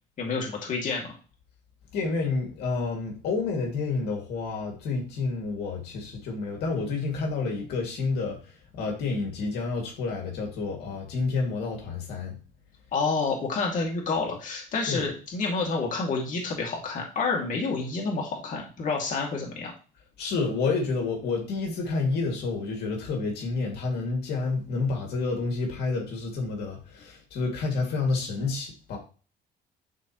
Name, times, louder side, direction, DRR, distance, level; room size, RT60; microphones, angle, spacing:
voice 1, 0.2-1.1 12.9-19.7, left 4 dB, 50° left, 0 dB, 2.4 m, -29 dB
voice 2, 1.9-8.4 8.7-12.3 14.9-15.1 20.2-29.0, left 3 dB, 75° left, 1 dB, 2.5 m, -29 dB
11.5 x 4.2 x 3.1 m, 0.36 s
cardioid pair, 110°, 17 cm